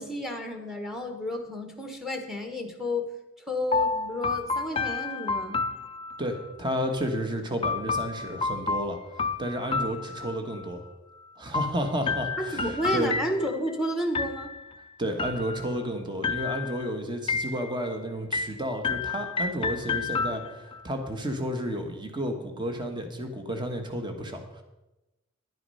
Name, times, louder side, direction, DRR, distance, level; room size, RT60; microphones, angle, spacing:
voice 1, 0.0-3.1 3.5-5.6 12.4-14.5, left 1 dB, ahead, 4 dB, 1.2 m, -31 dB
sound 1, 3.7-6.5 7.6-10.6 11.5-13.7 14.2-14.8 15.2-15.9 16.2-16.9 17.3-17.9 18.3-20.8, left 4 dB, 25° left, 0.4 m, -30 dB
voice 2, 6.2-9.0 9.4-10.8 11.4-13.2 15.0-24.6, equal, 20° right, 5 dB, 1.3 m, -32 dB
10.5 x 9.6 x 5.5 m, 0.99 s
head